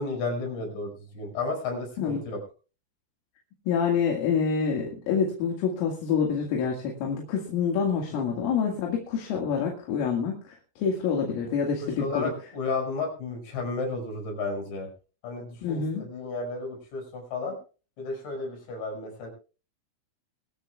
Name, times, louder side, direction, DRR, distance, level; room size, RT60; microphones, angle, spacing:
voice 1, 0.0-2.4 8.1-8.2 11.8-14.9 15.2-17.6 18.0-19.3, left 3 dB, 60° left, 2 dB, 7.8 m, -33 dB
voice 2, 3.7-12.3 15.6-16.0, left 6 dB, 80° left, 0 dB, 4.5 m, -27 dB
23.5 x 13.5 x 2.4 m, 0.36 s
omnidirectional pair, 5.8 m